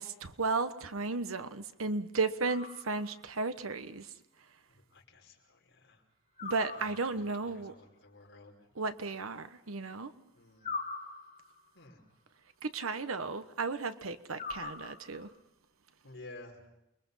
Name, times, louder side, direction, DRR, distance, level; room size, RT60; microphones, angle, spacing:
voice 1, 0.0-4.1 6.4-7.7 8.8-10.1 12.6-15.3, right 3 dB, 90° right, 1.2 m, -34 dB
sound 1, 2.4-3.3 6.4-7.4 10.6-11.7 14.3-15.3, left 4 dB, 30° left, 5.7 m, -42 dB
voice 2, 4.7-6.0 6.4-8.5 10.3-10.7 11.7-12.0 16.0-16.6, left 2 dB, 65° left, 5.2 m, -53 dB
29.0 x 22.0 x 5.6 m
head